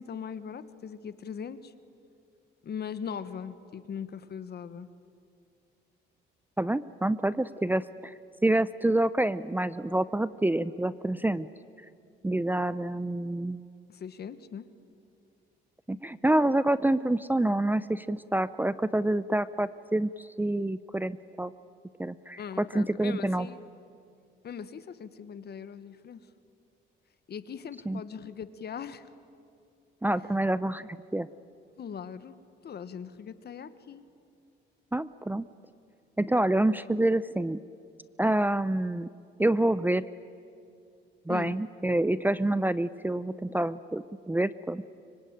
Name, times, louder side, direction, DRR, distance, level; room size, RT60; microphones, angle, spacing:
voice 1, 0.0-1.7 2.6-4.9 13.9-14.7 22.4-23.6 24.4-26.2 27.3-29.1 31.8-32.4 32.6-34.0 41.3-41.5, left 7 dB, 55° left, 13 dB, 1.4 m, -40 dB
voice 2, 6.6-8.1 8.4-11.5 12.2-13.7 15.9-21.5 22.0-23.5 27.9-28.0 30.0-31.3 34.9-35.5 36.2-37.6 38.2-39.1 39.4-40.0 41.3-44.8, right 1 dB, 10° right, 16 dB, 0.6 m, -27 dB
25.0 x 24.5 x 9.0 m, 2.5 s
cardioid pair, 90°, 20 cm